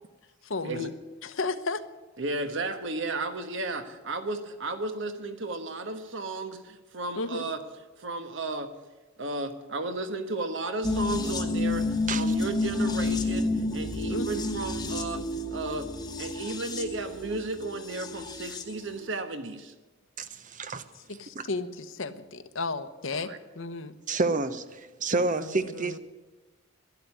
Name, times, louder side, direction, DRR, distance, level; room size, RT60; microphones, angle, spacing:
voice 1, 0.4-0.9 1.2-1.8 7.2-7.4 14.1-14.3 21.1-24.0 25.1-26.0, left 3 dB, 70° left, 9 dB, 1.1 m, -34 dB
voice 2, 2.2-7.6 8.0-8.7 9.2-15.2 15.5-15.9 16.2-19.7 23.1-23.4, right 2 dB, 65° right, 8 dB, 1.3 m, -34 dB
sound 1, 10.8-18.7 19.0-19.1, left 2 dB, 20° left, 1.3 m, -30 dB
voice 3, 20.2-20.8 21.3-21.4 24.1-26.0, right 3 dB, 40° right, 12 dB, 0.9 m, -29 dB
12.0 x 11.5 x 9.8 m, 1.2 s
head